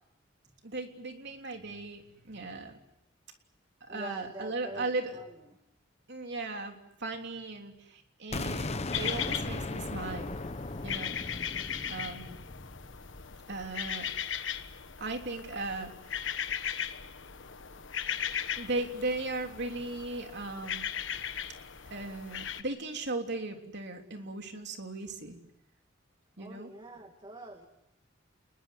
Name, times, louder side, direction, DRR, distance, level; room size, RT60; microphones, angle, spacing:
voice 1, 0.6-2.8 3.9-5.2 6.1-10.3 10.8-11.2 11.9-12.4 13.5-14.1 15.0-16.3 18.6-20.9 21.9-25.4 26.4-26.7, right 2 dB, 60° right, 4 dB, 3.3 m, -37 dB
voice 2, 3.9-5.3 26.4-27.7, right 3 dB, 25° right, 5 dB, 2.1 m, -44 dB
sound 1, 8.3-14.1, left 2 dB, 35° left, 1.0 m, -38 dB
sound 2, 8.9-22.6, left 8 dB, 70° left, 1.4 m, -38 dB
28.5 x 21.0 x 7.9 m, 0.81 s
head